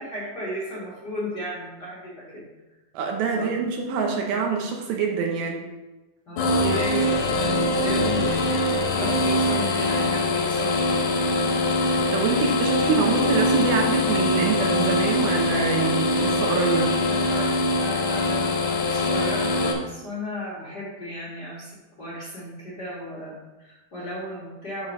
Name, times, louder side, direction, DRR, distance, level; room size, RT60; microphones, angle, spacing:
voice 1, 0.0-2.5 3.4-3.5 6.3-8.4 8.9-11.2 16.7-24.9, left 1 dB, 35° left, -7 dB, 1.8 m, -34 dB
voice 2, 2.9-5.6 11.9-16.9, right 5 dB, 75° right, 2 dB, 2.8 m, -25 dB
sound 1, 6.4-19.7, left 2 dB, 65° left, 2.4 m, -23 dB
6.8 x 5.4 x 5.4 m, 1.1 s
omnidirectional pair, 4.4 m